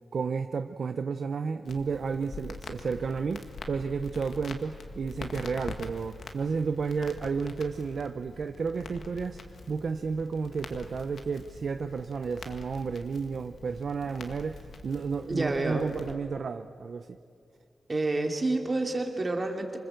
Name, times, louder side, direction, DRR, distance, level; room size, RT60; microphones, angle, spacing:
voice 1, 0.1-17.2, right 5 dB, 60° right, 8 dB, 0.6 m, -32 dB
Crackle, 1.6-16.1, left 3 dB, 75° left, 1.9 m, -45 dB
voice 2, 15.3-15.9 17.9-19.8, right 2 dB, 25° right, 3 dB, 2.6 m, -29 dB
27.0 x 25.0 x 7.8 m, 2.4 s
wide cardioid pair, 145°, 0 cm